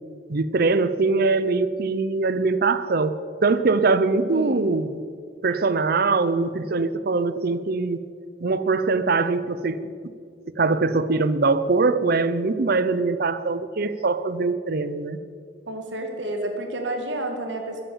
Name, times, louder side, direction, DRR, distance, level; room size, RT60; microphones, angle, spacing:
voice 1, 0.3-3.2 3.4-5.0 5.4-8.0 8.4-9.9 10.6-15.2, right 3 dB, 55° right, 14 dB, 0.6 m, -22 dB
voice 2, 4.3-4.6 15.7-17.8, right 1 dB, 80° right, 4 dB, 1.8 m, -30 dB
14.0 x 10.5 x 7.2 m, 2.3 s
head